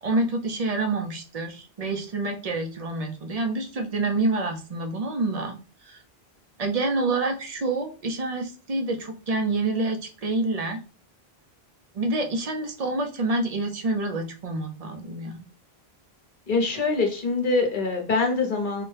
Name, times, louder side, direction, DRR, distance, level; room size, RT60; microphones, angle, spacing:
voice 1, 0.0-5.6 5.8-6.0 6.6-10.8 11.9-15.4, right 2 dB, 45° right, 4 dB, 0.6 m, -27 dB
voice 2, 16.5-18.8, left 3 dB, 55° left, 3 dB, 1.0 m, -24 dB
4.1 x 2.1 x 3.2 m, 0.35 s
omnidirectional pair, 1.1 m